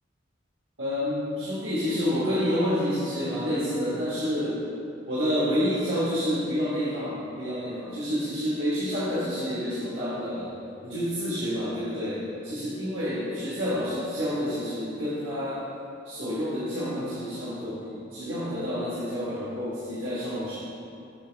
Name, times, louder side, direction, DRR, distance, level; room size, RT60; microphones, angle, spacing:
voice 1, 0.8-4.6 5.1-10.5 10.8-15.6 16.0-20.6, equal, 85° right, -9 dB, 1.4 m, -29 dB
7.8 x 6.1 x 3.4 m, 2.6 s
head